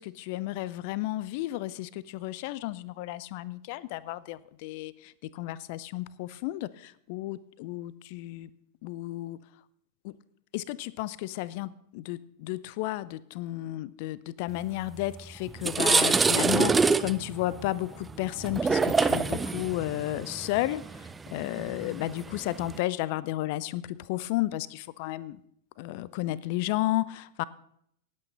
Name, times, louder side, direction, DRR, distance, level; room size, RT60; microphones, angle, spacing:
voice 1, 0.0-8.5 8.8-9.4 10.0-10.2 10.5-25.4 25.8-27.4, left 16 dB, 45° left, 20 dB, 0.5 m, -33 dB
sound 1, 15.0-15.1 15.5-22.8, right 4 dB, 15° right, 0.4 m, -26 dB
19.0 x 8.6 x 4.0 m, 0.71 s
figure-of-eight pair, 90°, 0 cm